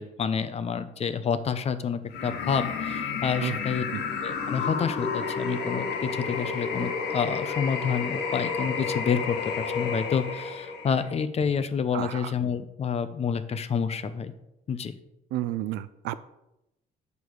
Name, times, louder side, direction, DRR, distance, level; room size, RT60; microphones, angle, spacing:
voice 1, 0.0-3.8 4.2-14.3 14.7-14.9, left 6 dB, 40° left, 11 dB, 0.8 m, -29 dB
sound 1, 2.1-11.1, left 5 dB, 80° left, 1.4 m, -31 dB
voice 2, 11.9-12.3 15.3-16.2, right 14 dB, 90° right, 15 dB, 0.5 m, -31 dB
8.5 x 6.9 x 4.7 m, 0.87 s
cardioid pair, 110°, 17 cm